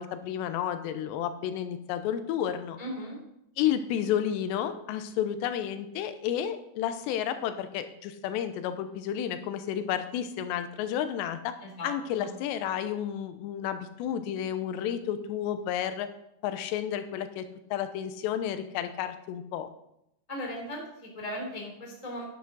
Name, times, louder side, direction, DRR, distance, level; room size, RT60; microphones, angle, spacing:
voice 1, 0.0-2.8 3.6-11.6 11.8-16.1 16.4-17.5 17.7-19.7, left 10 dB, 90° left, 10 dB, 2.9 m, -31 dB
voice 2, 2.8-3.2 11.6-12.3 20.3-22.2, equal, 10° left, -1 dB, 2.2 m, -38 dB
10.0 x 8.0 x 6.1 m, 0.80 s
omnidirectional pair, 5.0 m